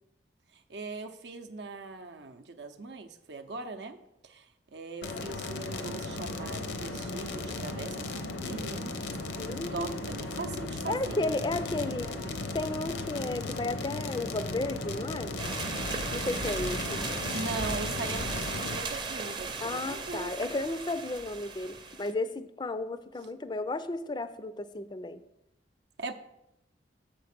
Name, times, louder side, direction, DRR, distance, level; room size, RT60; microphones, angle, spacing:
voice 1, 0.5-4.0 4.2-8.0 8.4-9.0 9.7-11.2 11.5-12.4 17.3-20.3 26.0-26.1, right 3 dB, 70° right, 7 dB, 0.6 m, -40 dB
sound 1, 5.0-18.8, left 2 dB, 80° left, 0.8 m, -36 dB
voice 2, 9.4-9.9 10.9-12.1 12.5-15.3 16.1-17.0 19.6-25.2, left 2 dB, 25° left, 12 dB, 0.4 m, -33 dB
sound 2, 15.4-22.1, right 4 dB, 25° right, 0.6 m, -36 dB
7.2 x 5.1 x 5.9 m, 0.85 s
head